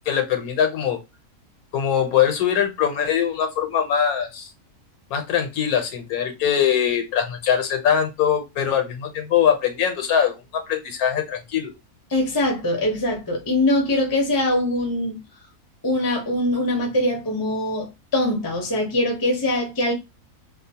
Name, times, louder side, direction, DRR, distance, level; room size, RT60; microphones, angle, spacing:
voice 1, 0.1-1.0 1.7-4.5 5.1-11.7, left 8 dB, 75° left, 1.1 m, -22 dB
voice 2, 12.1-15.2 15.8-19.9, left 1 dB, 25° left, 0.5 m, -22 dB
2.8 x 2.0 x 2.7 m
omnidirectional pair, 1.6 m